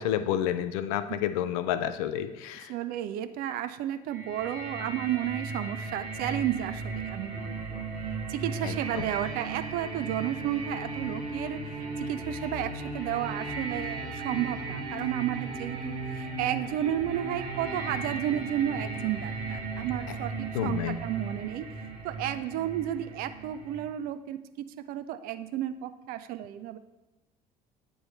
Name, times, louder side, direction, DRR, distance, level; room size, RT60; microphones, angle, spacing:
voice 1, 0.0-2.7 8.6-9.1 20.1-20.2 20.5-21.0, left 10 dB, 60° left, 11 dB, 0.4 m, -30 dB
voice 2, 2.7-7.8 8.3-11.6 12.1-21.7 22.0-24.4 24.9-26.8, right 11 dB, 45° right, 11 dB, 0.4 m, -32 dB
sound 1, 4.1-23.8, right 3 dB, 65° right, 1.1 m, -36 dB
8.9 x 3.1 x 4.1 m, 1.1 s
figure-of-eight pair, 60°, 21 cm